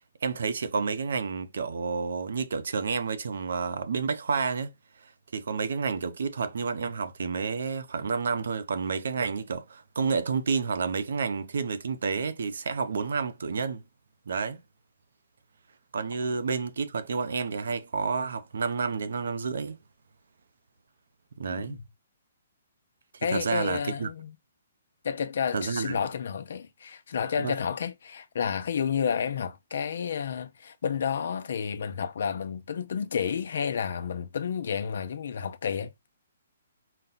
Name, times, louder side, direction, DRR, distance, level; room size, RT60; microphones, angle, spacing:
voice 1, 0.2-4.7 5.0-13.8 14.3-14.6 15.9-19.8 21.4-21.8 23.1-24.1 25.5-26.0 27.4-27.5, right 5 dB, 75° right, 0.7 m, -30 dB
voice 2, 23.2-24.3 25.0-35.9, left 7 dB, 65° left, 0.6 m, -31 dB
4.1 x 2.2 x 4.0 m
hypercardioid pair, 165°, 0 cm